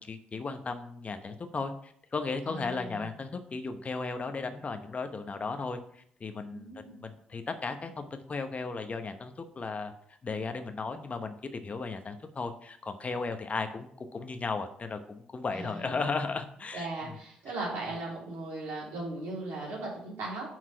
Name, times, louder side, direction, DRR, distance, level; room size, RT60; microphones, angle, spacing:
voice 1, 0.0-9.9 10.2-17.1, left 4 dB, 40° left, 8 dB, 0.9 m, -35 dB
voice 2, 2.4-3.2 6.5-7.0 15.5-16.0 16.7-20.5, right 2 dB, 75° right, -4 dB, 3.0 m, -38 dB
6.0 x 4.6 x 5.6 m, 0.65 s
hypercardioid pair, 45°, 4 cm